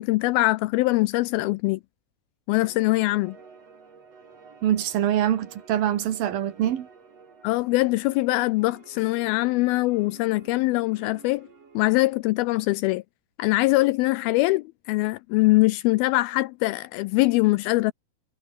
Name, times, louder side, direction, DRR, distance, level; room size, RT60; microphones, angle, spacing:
voice 1, 0.0-1.8 2.5-3.4 7.4-11.5 11.8-13.0 13.4-17.9, left 20 dB, 85° left, 2.2 m, -22 dB
sound 1, 2.6-12.0, right 5 dB, 40° right, 4.8 m, -51 dB
voice 2, 4.6-6.9, right 11 dB, 65° right, 3.3 m, -24 dB
omnidirectional pair, 4.7 m